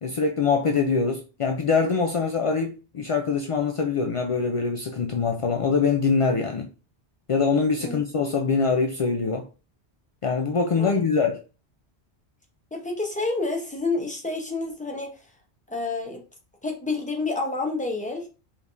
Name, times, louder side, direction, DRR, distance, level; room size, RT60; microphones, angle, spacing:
voice 1, 0.0-6.7 7.3-9.5 10.2-11.4, left 5 dB, 55° left, 0.3 m, -24 dB
voice 2, 12.7-15.2 15.7-16.2 16.6-18.3, left 3 dB, 10° left, 0.8 m, -29 dB
5.0 x 3.3 x 2.6 m
omnidirectional pair, 1.2 m